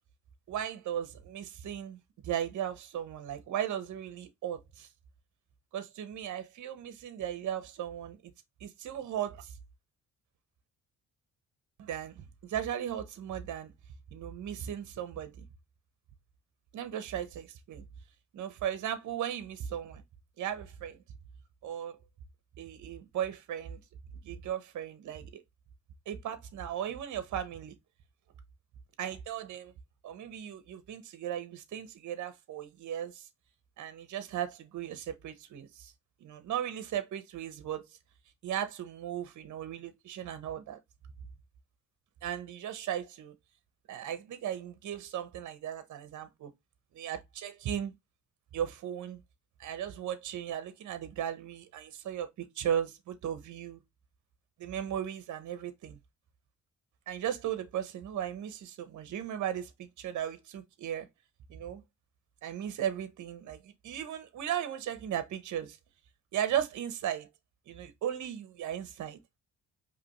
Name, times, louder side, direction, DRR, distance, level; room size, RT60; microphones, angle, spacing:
voice 1, 0.5-4.9 5.7-8.3 8.6-9.5 11.8-13.7 14.1-15.4 16.7-17.8 18.3-20.0 20.4-21.0 21.6-22.0 22.6-23.8 24.2-25.4 26.1-27.7 29.0-29.7 30.0-33.3 33.8-35.9 36.2-37.9 38.4-40.8 42.2-43.3 43.9-46.5 46.9-47.9 48.5-49.2 49.6-53.8 54.6-56.0 57.1-61.1 61.5-61.8 62.4-65.8 66.3-67.3 67.7-69.4, right 10 dB, 70° right, 1.1 m, -36 dB
5.0 x 3.1 x 3.1 m
cardioid pair, 90°, 30 cm